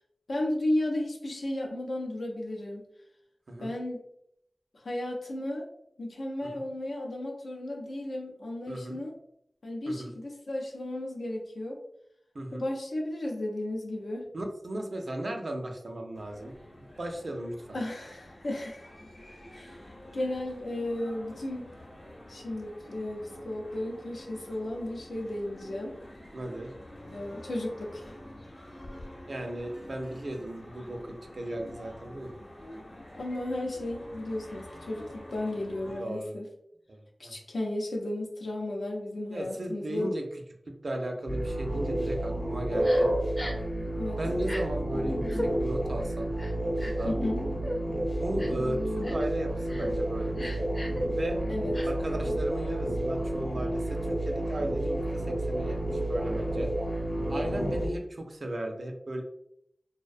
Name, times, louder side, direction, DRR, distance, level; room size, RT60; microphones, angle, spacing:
voice 1, 0.3-2.8 3.6-4.0 4.8-5.7 6.0-9.1 9.6-11.8 12.5-14.3 17.7-18.8 19.5-19.8 20.1-21.7 22.3-25.9 27.0-28.0 33.2-36.5 37.2-40.1 44.0-44.2 47.0-47.4 51.5-51.7, left 1 dB, 85° left, 1 dB, 0.5 m, -34 dB
voice 2, 8.7-9.0 9.9-10.1 12.3-12.6 14.3-17.8 26.3-26.7 29.3-32.4 35.8-36.4 36.9-37.3 39.3-40.2 40.7-43.1 44.2-46.4 46.8-47.1 48.2-50.6 51.1-51.5 51.8-56.7 57.3-59.2, right 1 dB, 70° right, 3 dB, 0.4 m, -36 dB
sound 1, 16.1-36.0, left 1 dB, 65° left, 0.8 m, -48 dB
sound 2, 41.3-57.9, right 1 dB, 40° left, 0.9 m, -30 dB
Crying sobbing, 42.8-43.0 43.4-43.7 44.4-44.6 45.3-45.5 46.4-47.1 47.6-47.8 48.4-48.6 49.0-49.3 49.7-49.9 50.4-51.0 51.7-51.9, equal, 20° left, 0.5 m, -37 dB
2.5 x 2.1 x 2.4 m, 0.76 s
wide cardioid pair, 55°, 0 cm